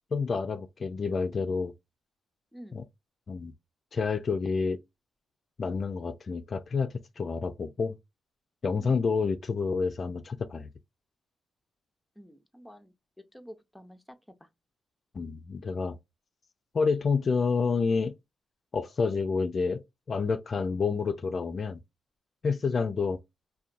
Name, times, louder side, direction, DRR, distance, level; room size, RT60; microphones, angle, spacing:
voice 1, 0.1-1.7 2.7-2.8 3.3-3.5 3.9-4.8 5.6-8.0 8.6-10.7 15.1-16.0 16.7-18.2 18.7-19.8 20.1-21.8 22.4-23.2, left 5 dB, 50° left, 0.3 m, -29 dB
voice 2, 2.5-2.8 8.8-9.0 12.2-12.9 13.3-14.0, equal, 5° left, 0.6 m, -48 dB
2.7 x 2.1 x 2.4 m
cardioid pair, 65°, 0 cm